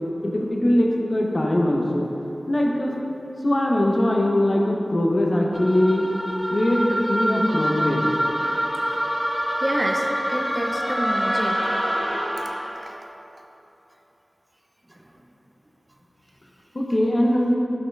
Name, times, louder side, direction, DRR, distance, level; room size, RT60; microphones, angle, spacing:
voice 1, 0.0-2.1 2.5-2.9 3.4-6.1 6.5-8.0 16.7-17.6, left 1 dB, 45° left, -1 dB, 0.7 m, -21 dB
sound 1, 5.5-12.8, equal, 5° left, 0.9 m, -26 dB
voice 2, 9.6-11.8 12.8-13.0 14.9-15.1, right 1 dB, 25° right, 2 dB, 0.5 m, -28 dB
5.6 x 5.5 x 3.3 m, 2.9 s
wide cardioid pair, 50°, 0 cm